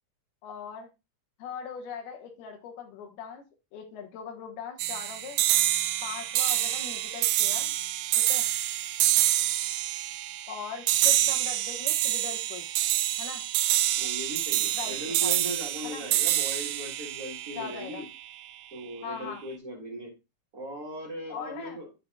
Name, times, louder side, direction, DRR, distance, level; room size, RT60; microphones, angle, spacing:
voice 1, 0.4-0.9 1.4-3.4 3.7-5.4 6.0-7.7 8.2-8.5 10.5-12.7 13.2-13.4 14.7-15.3 15.8-16.0 17.6-18.0 19.0-19.4 21.3-21.8, left 7 dB, 90° left, 3 dB, 3.0 m, -40 dB
sound 1, 4.8-18.3, right 14 dB, 90° right, 2.5 m, -27 dB
voice 2, 13.9-18.1 18.7-20.1 20.5-21.9, right 1 dB, 30° right, -5 dB, 2.0 m, -38 dB
11.5 x 5.4 x 2.2 m, 0.26 s
omnidirectional pair, 4.3 m